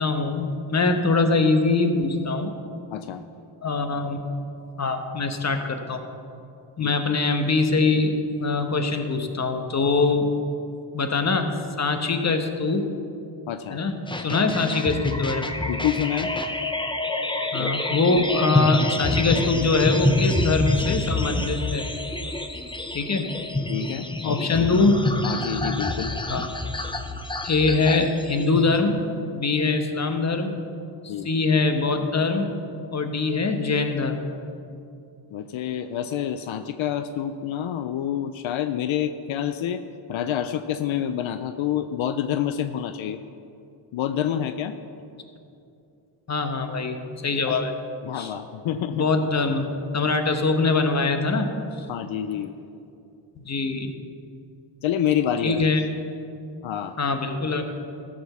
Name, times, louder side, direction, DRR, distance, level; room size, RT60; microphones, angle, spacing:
voice 1, 0.0-2.5 3.6-4.2 4.8-6.0 6.8-8.1 8.4-10.3 10.9-12.9 13.7-15.5 17.5-21.9 22.9-23.3 24.2-25.1 26.3-26.5 27.4-29.0 29.3-30.6 31.0-32.4 32.9-34.2 46.3-47.7 48.1-48.3 48.7-49.7 49.9-51.5 51.8-51.9 53.4-53.9 55.4-55.8 57.0-57.7, left 3 dB, 35° left, 6 dB, 1.1 m, -23 dB
voice 2, 2.9-3.2 6.8-6.9 13.5-13.8 15.7-16.3 17.6-17.7 23.7-24.7 25.2-26.1 31.1-31.3 35.3-39.8 40.1-43.2 43.9-44.8 47.5-47.6 48.0-49.1 51.9-52.5 54.8-55.7 56.6-57.0, left 10 dB, 80° left, 10 dB, 0.6 m, -28 dB
sound 1, 14.1-28.8, left 2 dB, 10° left, 0.7 m, -27 dB
14.5 x 5.3 x 6.7 m, 2.6 s
cardioid pair, 80°, 46 cm